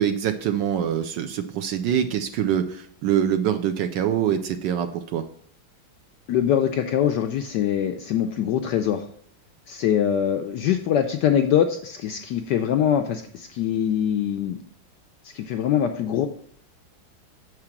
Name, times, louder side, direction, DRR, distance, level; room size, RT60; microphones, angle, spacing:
voice 1, 0.0-5.2, right 9 dB, 75° right, 8 dB, 1.1 m, -24 dB
voice 2, 6.3-9.0 9.7-14.6 15.3-16.3, left 9 dB, 75° left, 5 dB, 1.0 m, -23 dB
7.4 x 4.9 x 5.8 m, 0.62 s
omnidirectional pair, 2.3 m